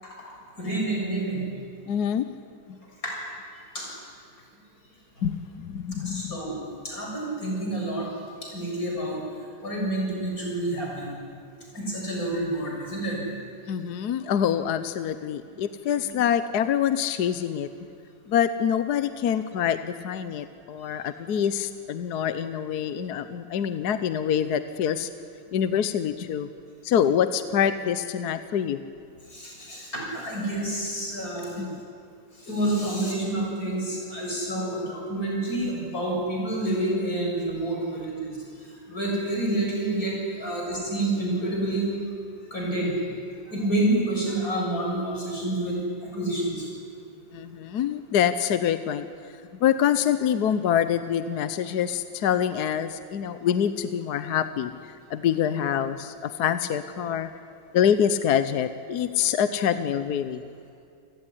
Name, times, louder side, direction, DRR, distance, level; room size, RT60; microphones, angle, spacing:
voice 1, 0.6-1.4 3.0-3.2 3.7-3.9 6.1-6.6 6.8-8.1 8.5-9.2 9.6-11.1 11.7-13.2 16.1-16.2 29.3-31.6 32.4-38.3 38.9-41.9 42.5-42.9 43.5-45.8 46.1-46.5, right 1 dB, 45° left, -2 dB, 7.5 m, -28 dB
voice 2, 1.9-2.3 2.7-2.8 5.2-6.4 13.7-17.7 18.3-25.1 25.5-26.5 26.8-28.8 31.6-31.8 47.3-49.1 49.6-54.7 55.1-57.3 57.7-60.4, left 9 dB, 60° left, 12 dB, 1.2 m, -25 dB
28.0 x 17.5 x 9.9 m, 2.3 s
omnidirectional pair, 2.2 m